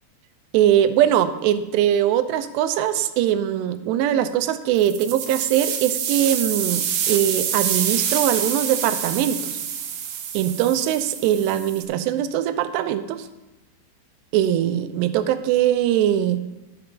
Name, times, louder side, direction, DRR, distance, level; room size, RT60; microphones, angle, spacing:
voice 1, 0.5-9.6 10.3-13.3 14.3-16.4, right 11 dB, 85° right, 10 dB, 2.8 m, -21 dB
sound 1, 4.7-11.8, right 8 dB, 70° right, 2.4 m, -27 dB
11.5 x 5.0 x 6.0 m, 1.1 s
omnidirectional pair, 4.9 m